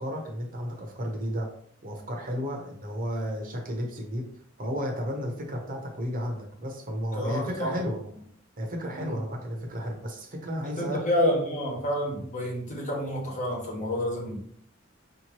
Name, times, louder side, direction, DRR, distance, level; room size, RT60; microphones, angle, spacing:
voice 1, 0.0-1.5 1.8-4.2 4.6-8.0 8.6-11.0, equal, 45° right, 2 dB, 0.9 m, -33 dB
voice 2, 7.1-7.7 8.9-9.1 10.8-14.4, left 1 dB, 40° left, -2 dB, 1.3 m, -29 dB
5.0 x 2.9 x 3.0 m, 0.64 s
head